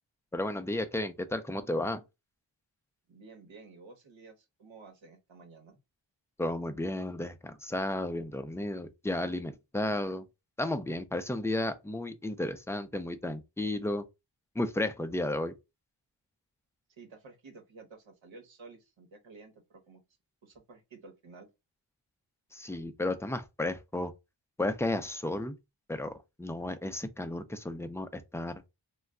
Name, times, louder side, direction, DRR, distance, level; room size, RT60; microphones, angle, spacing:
voice 1, 0.3-2.0 6.4-10.3 10.6-14.0 14.6-15.5 22.5-24.1 24.6-25.5 25.9-28.5, left 1 dB, 5° left, 0.4 m, -33 dB
voice 2, 3.1-5.8 17.0-20.0 20.4-21.5, right 4 dB, 80° right, 1.0 m, -52 dB
2.3 x 2.2 x 3.6 m
wide cardioid pair, 75°, 46 cm